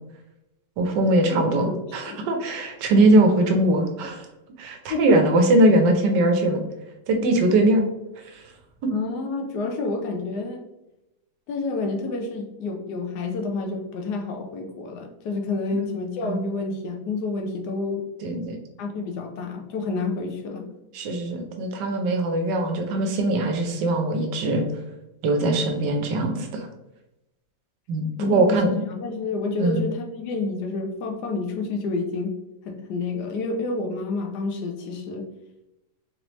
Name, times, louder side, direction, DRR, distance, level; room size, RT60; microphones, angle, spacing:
voice 1, 0.8-4.2 4.6-6.6 7.1-7.8 8.3-8.4 8.8-8.9 15.7-15.8 16.2-16.4 18.2-18.6 20.9-24.6 25.2-26.7 27.9-28.7 29.6-29.8, right 2 dB, 85° right, 5 dB, 1.3 m, -21 dB
voice 2, 1.3-2.3 4.9-5.2 8.9-10.6 11.5-18.1 18.8-20.7 28.2-28.6 28.9-32.3 32.6-35.3, left 3 dB, 75° left, 3 dB, 1.2 m, -29 dB
4.0 x 3.1 x 3.0 m, 0.93 s
omnidirectional pair, 1.8 m